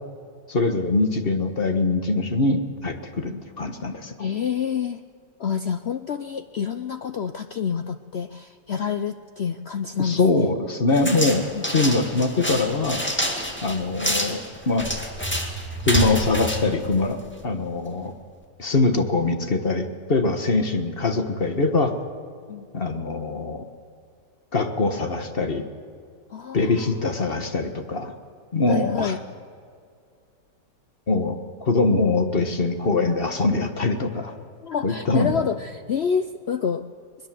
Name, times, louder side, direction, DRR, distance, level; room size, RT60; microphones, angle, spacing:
voice 1, 0.5-4.2 10.0-13.0 13.6-14.9 15.8-18.1 18.6-21.9 22.7-23.6 24.5-25.6 26.5-28.1 28.5-29.1 31.1-34.3 34.8-35.5, left 3 dB, 35° left, 6 dB, 1.5 m, -23 dB
voice 2, 4.2-5.0 5.4-10.5 11.6-11.7 22.5-22.7 26.3-26.9 28.7-29.2 34.6-36.9, left 7 dB, 80° left, 9 dB, 0.5 m, -28 dB
sound 1, 10.9-17.5, equal, 5° left, 2.0 m, -28 dB
21.5 x 21.5 x 7.6 m, 2.2 s
omnidirectional pair, 1.9 m